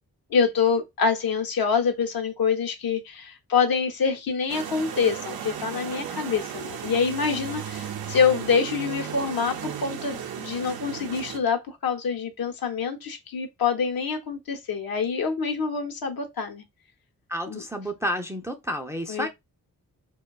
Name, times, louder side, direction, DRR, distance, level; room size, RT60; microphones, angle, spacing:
voice 1, 0.3-16.6 17.5-17.6 19.1-19.3, left 6 dB, 75° left, 0.7 m, -26 dB
sound 1, 4.5-11.4, right 8 dB, 85° right, 0.5 m, -35 dB
voice 2, 17.3-19.3, equal, 10° right, 0.4 m, -30 dB
2.5 x 2.2 x 2.2 m
cardioid pair, 60°, 36 cm